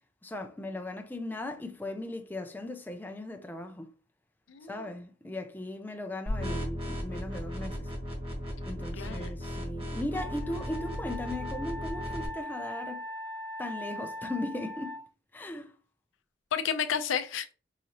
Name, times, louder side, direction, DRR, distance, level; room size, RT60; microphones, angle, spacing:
voice 1, 0.2-3.9 4.6-7.9 8.6-13.1 13.6-15.0 15.3-15.7, left 1 dB, 10° left, 0.4 m, -38 dB
voice 2, 4.5-4.9 8.9-9.4 16.5-17.5, left 7 dB, 85° left, 0.5 m, -32 dB
sound 1, 6.3-12.3, equal, 30° right, 1.2 m, -36 dB
Wind instrument woodwind instrument, 10.1-15.0, left 1 dB, 75° right, 1.6 m, -40 dB
4.8 x 2.7 x 2.9 m
head